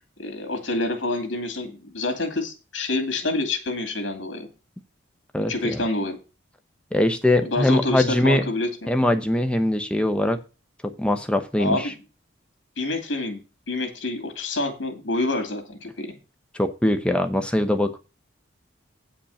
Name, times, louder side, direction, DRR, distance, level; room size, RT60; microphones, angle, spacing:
voice 1, 0.2-4.5 5.4-6.2 7.4-8.9 11.6-11.9 12.8-16.2, left 2 dB, 70° left, 7 dB, 2.3 m, -27 dB
voice 2, 5.3-5.8 6.9-8.5 8.9-10.4 10.8-11.9 16.5-18.0, left 1 dB, 5° left, 7 dB, 0.8 m, -22 dB
8.6 x 5.2 x 6.9 m, 0.31 s
head